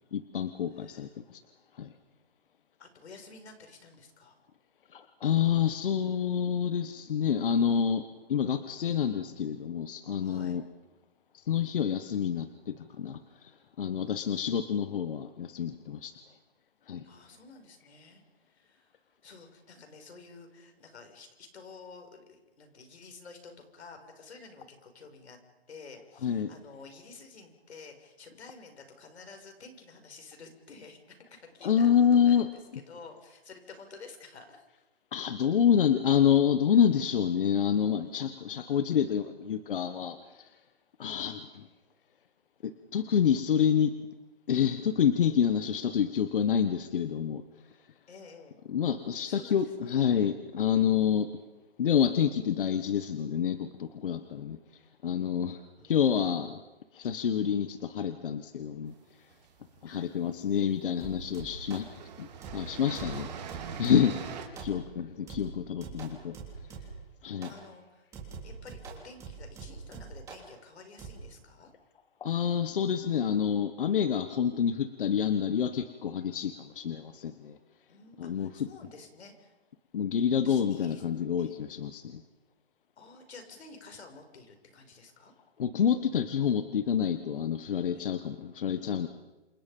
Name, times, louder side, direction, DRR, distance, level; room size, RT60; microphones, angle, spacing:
voice 1, 0.1-1.4 1.8-1.9 4.9-8.0 8.3-10.6 11.3-13.5 13.8-16.1 16.9-17.0 26.2-26.5 31.6-32.5 35.1-40.5 41.0-41.7 42.6-43.9 44.5-47.4 48.7-51.3 51.8-54.6 55.0-56.6 56.9-58.9 59.8-61.9 62.2-63.3 63.8-64.1 64.6-66.4 67.2-67.5 72.2-77.6 78.2-78.5 79.9-82.2 85.6-89.1, left 8 dB, 55° left, 10 dB, 1.4 m, -28 dB
voice 2, 0.7-1.2 2.8-4.4 10.2-10.6 14.1-14.8 17.0-18.2 18.5-18.9 19.2-25.4 25.7-32.3 32.7-34.7 48.1-48.6 49.2-50.0 55.8-56.0 59.8-60.1 64.7-65.0 67.5-68.1 68.4-71.7 77.9-79.5 80.4-81.0 81.4-81.6 83.0-85.3 87.9-88.1, left 4 dB, 90° left, 5 dB, 6.7 m, -51 dB
sound 1, 59.1-59.9 60.8-60.9 61.2-64.4, right 7 dB, 40° right, 3.8 m, -42 dB
sound 2, 61.0-61.9 62.4-64.2 64.6-65.0 65.3-67.1 67.4-67.7 68.1-70.5 71.0-71.1, right 5 dB, 10° right, 3.3 m, -44 dB
28.0 x 28.0 x 5.5 m, 1.1 s
hypercardioid pair, 175°, 32 cm